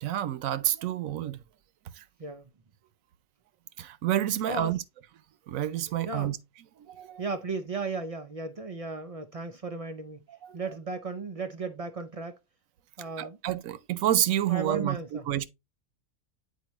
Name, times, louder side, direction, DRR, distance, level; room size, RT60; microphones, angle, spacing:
voice 1, 0.0-1.4 3.8-4.8 5.5-6.4 6.9-7.2 10.4-10.6 13.2-15.0 15.3-15.4, right 12 dB, 80° right, 1.0 m, -28 dB
voice 2, 2.2-2.5 4.5-4.8 6.0-6.3 7.2-10.3 10.5-12.4 13.0-13.4 14.5-15.3, right 3 dB, 65° right, 0.3 m, -35 dB
8.4 x 4.4 x 3.0 m
omnidirectional pair, 1.4 m